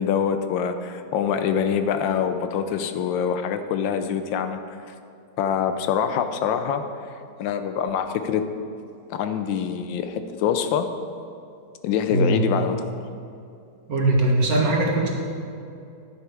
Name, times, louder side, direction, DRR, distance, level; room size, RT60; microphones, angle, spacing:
voice 1, 0.0-4.6 5.4-6.8 7.4-8.5 9.1-10.9 11.8-12.8, left 8 dB, 85° left, 8 dB, 1.4 m, -24 dB
voice 2, 13.9-15.1, right 2 dB, 50° right, -1 dB, 1.8 m, -20 dB
10.5 x 10.0 x 3.5 m, 2.6 s
omnidirectional pair, 2.0 m